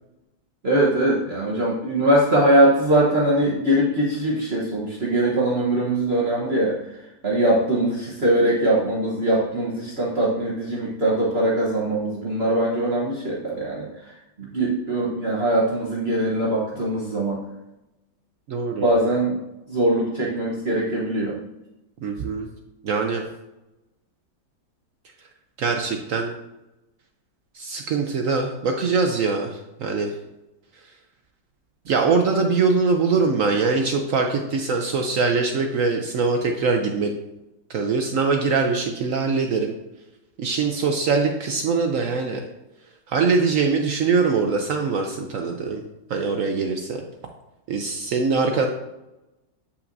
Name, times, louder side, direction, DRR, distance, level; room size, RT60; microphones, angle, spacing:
voice 1, 0.6-17.4 18.8-19.4 19.7-21.4, right 1 dB, 40° right, -5 dB, 1.1 m, -22 dB
voice 2, 18.5-18.9 22.0-22.5 22.8-23.2 25.6-26.3 27.5-30.2 31.9-37.1 37.7-39.7 40.4-42.4 43.1-45.8 46.1-47.0 47.7-48.7, right 4 dB, 65° right, 3 dB, 0.8 m, -22 dB
8.2 x 5.7 x 2.6 m, 0.95 s
omnidirectional pair, 2.0 m